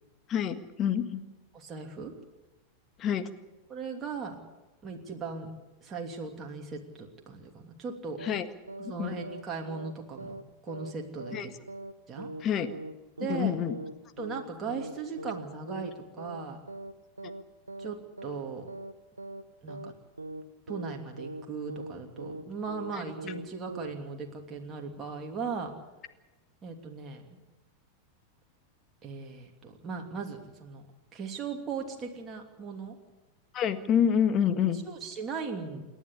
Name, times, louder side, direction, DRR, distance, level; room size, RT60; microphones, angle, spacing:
voice 1, 0.3-1.2 3.0-3.3 8.2-8.5 9.0-9.1 11.3-11.5 12.4-12.7 13.3-13.7 22.9-23.0 33.5-34.8, left 8 dB, 30° left, 9 dB, 1.7 m, -27 dB
voice 2, 1.5-2.1 3.7-4.4 4.8-5.5 5.8-8.2 8.8-11.6 12.1-12.3 13.2-13.6 14.2-16.6 17.8-18.7 19.6-19.9 20.7-25.7 26.6-27.2 29.0-30.9 31.1-33.0 34.8-35.8, right 5 dB, 25° right, 1 dB, 2.9 m, -38 dB
sound 1, 8.2-8.4 8.7-8.9 9.2-9.4 9.7-9.9 10.2-10.4 10.7-10.9 11.2-11.4 11.7-11.9 12.2-12.4 12.7-12.9 13.2-13.4 13.7-13.9 14.2-14.4 14.7-14.9 15.2-15.4 15.7-16.4 16.7-16.9 17.2-17.4 17.7-17.9 18.2-18.4 18.7-18.9 19.2-19.4 19.7-19.9 20.2-20.4 20.7-20.9 21.2-21.4 21.7-21.9 22.2-22.4 22.7-22.9 23.2-23.4 23.7-23.9, right 2 dB, 80° right, 1.1 m, -40 dB
28.0 x 11.0 x 9.9 m, 1.1 s
figure-of-eight pair, 90°, 0 cm